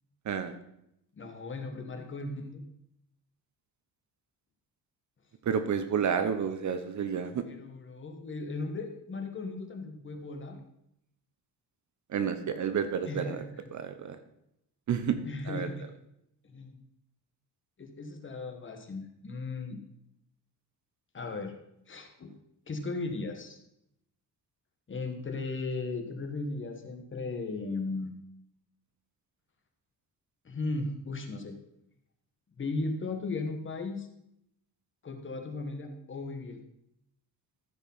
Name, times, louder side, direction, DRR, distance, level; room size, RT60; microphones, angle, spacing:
voice 1, 1.1-2.6 7.4-10.6 13.0-13.4 13.7-13.8 15.3-15.9 16.4-16.7 17.8-19.8 21.1-21.5 21.9-22.3 22.7-23.6 24.9-28.1 30.4-31.6 32.6-34.1 35.0-36.6, left 3 dB, 30° left, 5 dB, 1.4 m, -36 dB
voice 2, 5.4-7.4 12.1-13.4 13.7-14.2 14.9-15.2 15.4-15.7, right 7 dB, 45° right, 10 dB, 0.8 m, -30 dB
14.5 x 5.2 x 5.6 m, 0.79 s
cardioid pair, 155°, 40 cm